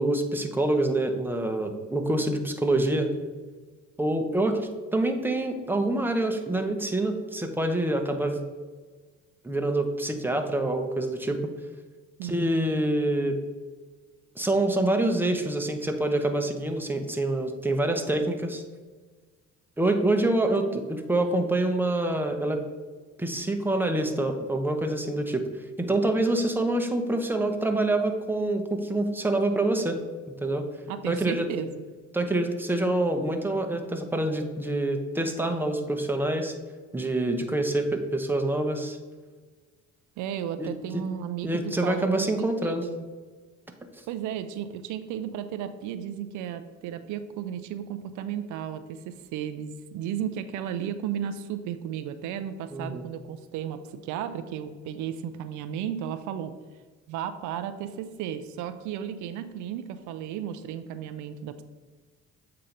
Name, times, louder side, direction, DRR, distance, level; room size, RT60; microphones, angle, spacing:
voice 1, 0.0-3.1 4.0-8.4 9.4-11.4 12.2-13.4 14.4-18.6 19.8-22.6 23.2-25.4 25.8-30.0 30.4-30.6 31.1-31.5 32.1-36.5 36.9-39.0 40.6-41.0 41.4-42.8 52.7-53.0, right 2 dB, 5° right, 4 dB, 0.9 m, -26 dB
voice 2, 12.2-12.5 20.5-20.8 30.9-31.8 40.2-42.1 42.4-43.1 44.1-56.5 57.1-61.6, right 9 dB, 80° right, 10 dB, 0.5 m, -34 dB
7.6 x 2.9 x 5.1 m, 1.4 s
supercardioid pair, 80°, 29 cm